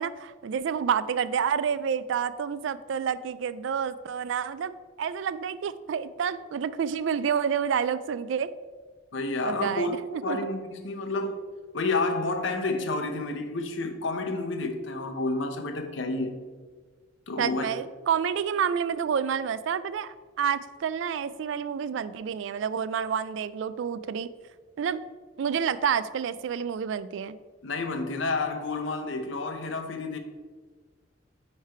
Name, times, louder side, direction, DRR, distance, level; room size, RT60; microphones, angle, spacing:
voice 1, 0.0-8.5 9.4-10.4 17.4-24.3 24.8-25.0 25.4-27.4, right 7 dB, 70° right, 15 dB, 0.3 m, -29 dB
voice 2, 9.1-9.9 10.2-11.4 11.7-16.3 17.3-17.6 27.6-30.2, left 3 dB, 70° left, 5 dB, 0.8 m, -30 dB
9.3 x 3.3 x 4.4 m, 1.4 s
head